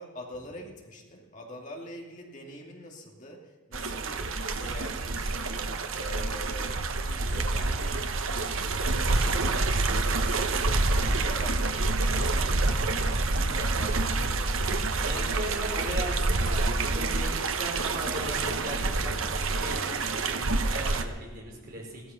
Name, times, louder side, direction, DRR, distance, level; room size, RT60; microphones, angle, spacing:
voice 1, 0.0-12.6 12.8-14.9, equal, 35° left, 0 dB, 2.7 m, -45 dB
sound 1, 3.7-21.0, right 3 dB, 75° right, 1.1 m, -27 dB
voice 2, 14.9-22.0, right 1 dB, 45° right, -2 dB, 5.0 m, -38 dB
16.0 x 13.5 x 5.8 m, 1.4 s
head